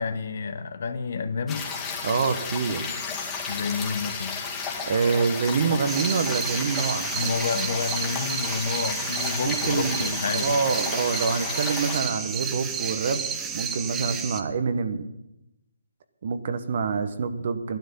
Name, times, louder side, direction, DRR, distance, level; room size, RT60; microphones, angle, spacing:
voice 1, 0.0-1.7 3.5-4.4 7.1-10.6, left 5 dB, 55° left, 11 dB, 1.1 m, -29 dB
sound 1, 1.5-12.0, left 5 dB, 15° left, 2.2 m, -33 dB
voice 2, 2.0-3.0 4.8-7.4 9.4-13.2 13.5-15.0 16.2-17.8, right 5 dB, 50° right, 10 dB, 1.2 m, -26 dB
sound 2, 5.9-14.4, right 7 dB, 15° right, 0.9 m, -31 dB
13.0 x 12.0 x 5.5 m, 0.88 s
figure-of-eight pair, 140°, 0 cm